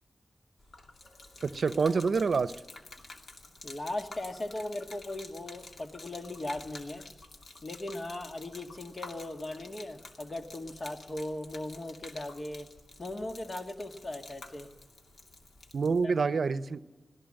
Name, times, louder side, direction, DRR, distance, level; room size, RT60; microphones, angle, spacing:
Gurgling / Liquid, 0.6-16.0, left 2 dB, 65° left, 2.6 m, -50 dB
voice 1, 1.4-2.5 15.7-16.8, right 5 dB, 70° right, 0.7 m, -27 dB
voice 2, 3.6-7.1 7.6-12.7 13.0-14.7 16.0-16.1, left 1 dB, 50° left, 1.9 m, -38 dB
21.5 x 16.0 x 7.7 m
cardioid pair, 40°, 0 cm